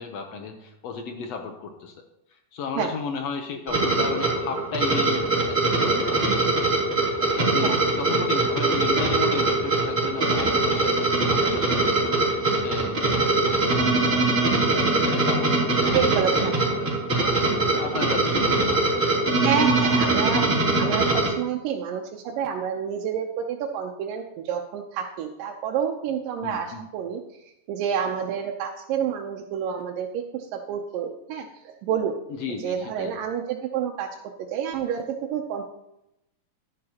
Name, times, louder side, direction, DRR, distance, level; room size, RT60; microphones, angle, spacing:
voice 1, 0.0-1.9 2.5-6.5 7.2-13.8 14.9-17.4 17.7-18.9 26.4-26.8 32.3-33.2, left 5 dB, 70° left, 4 dB, 1.6 m, -34 dB
sound 1, 3.7-21.3, right 2 dB, 20° right, 3.0 m, -22 dB
voice 2, 15.9-16.6 19.4-32.1 32.6-34.1 34.5-35.6, right 8 dB, 85° right, 1 dB, 2.4 m, -29 dB
11.5 x 10.5 x 2.9 m, 0.86 s
omnidirectional pair, 3.9 m